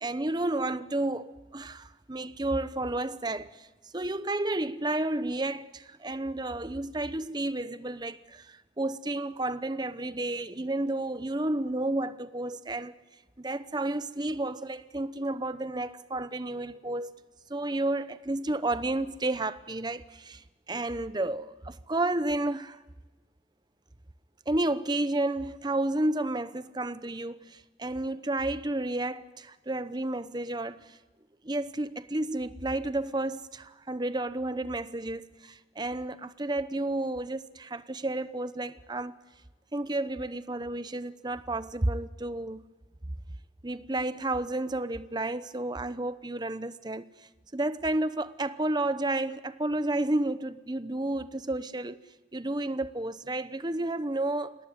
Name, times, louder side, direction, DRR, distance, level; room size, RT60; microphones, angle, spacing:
voice 1, 0.0-3.7 3.9-12.9 13.4-17.1 17.5-22.8 24.5-31.0 31.4-39.1 39.7-42.6 43.6-52.0 52.3-54.6, right 2 dB, 25° right, 0.8 m, -31 dB
26.5 x 18.5 x 9.7 m
head